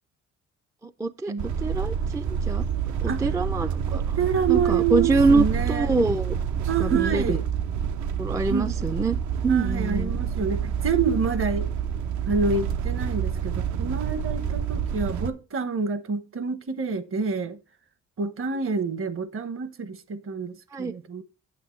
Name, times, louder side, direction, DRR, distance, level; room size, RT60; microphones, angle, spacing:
voice 1, 0.8-2.7 3.0-4.2 4.5-6.4 6.8-7.4 8.2-9.2 9.4-10.2 20.7-20.9, right 3 dB, 10° right, 0.3 m, -25 dB
sound 1, 1.4-15.3, right 8 dB, 75° right, 0.7 m, -28 dB
voice 2, 3.9-6.0 6.7-7.4 8.5-8.7 9.5-11.7 12.3-17.6 18.2-21.2, right 5 dB, 45° right, 0.9 m, -27 dB
8.7 x 7.8 x 3.1 m
cardioid pair, 90°, 30 cm